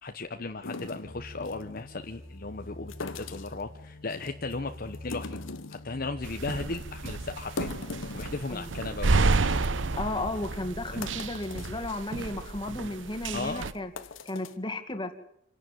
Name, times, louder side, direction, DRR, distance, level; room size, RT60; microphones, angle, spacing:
voice 1, 0.0-9.3 10.9-11.0 13.3-13.7, left 3 dB, 50° left, 6 dB, 0.9 m, -36 dB
sound 1, 0.6-1.6 2.9-3.6 4.1-4.5 4.9-5.9 6.3-6.4 6.7-6.8 7.3-8.9 9.2-9.3 9.5-9.7 10.3-10.4 10.8-11.8 12.3-12.5 13.0-13.1 13.7-14.5, left 3 dB, 85° left, 1.3 m, -40 dB
sound 2, 1.0-11.8, left 1 dB, 65° left, 2.3 m, -46 dB
sound 3, 6.2-13.7, right 3 dB, 70° right, 0.9 m, -30 dB
voice 2, 9.9-13.9 14.3-15.1, left 2 dB, 25° left, 6 dB, 2.1 m, -34 dB
26.5 x 11.0 x 9.2 m, 0.75 s
head